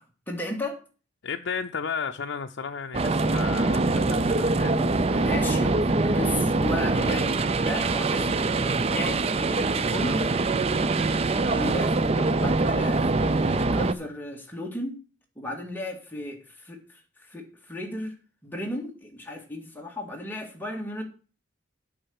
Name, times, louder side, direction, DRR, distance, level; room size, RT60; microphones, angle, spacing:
voice 1, 0.3-0.8 4.7-8.4 8.9-10.3 11.4-15.0 15.4-17.0 17.3-18.2 18.4-21.0, left 1 dB, 10° left, 2.1 m, -34 dB
voice 2, 1.2-4.8 6.1-6.2, left 6 dB, 75° left, 0.6 m, -33 dB
sound 1, 2.9-13.9, right 3 dB, 30° right, 0.5 m, -24 dB
8.6 x 5.6 x 7.1 m
head